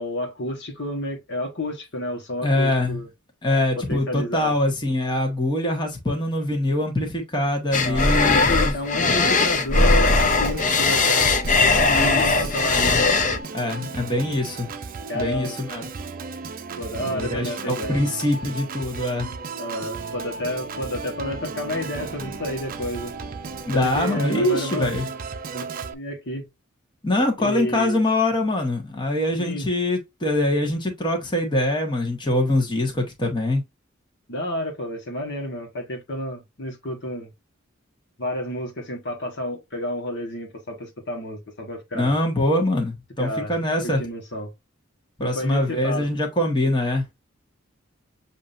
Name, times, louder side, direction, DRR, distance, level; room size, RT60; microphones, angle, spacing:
voice 1, 0.0-3.1 3.8-4.5 7.8-12.9 15.1-15.6 16.8-18.0 19.6-23.1 23.7-24.9 25.5-25.7 25.9-26.5 27.4-28.0 29.4-29.7 34.3-37.3 38.2-42.1 43.2-43.5 43.8-44.5 45.2-46.1, left 1 dB, 55° left, 1.4 m, -30 dB
voice 2, 2.4-3.0 3.4-8.7 11.9-12.5 12.7-13.1 13.5-14.7 15.1-15.9 17.0-19.3 23.7-25.1 27.0-33.6 41.9-44.0 45.2-47.0, left 1 dB, 20° left, 1.3 m, -23 dB
sound 1, 7.7-13.4, left 3 dB, 40° left, 0.6 m, -19 dB
Organ, 9.9-25.9, right 4 dB, 45° right, 0.5 m, -35 dB
7.2 x 2.8 x 2.5 m
head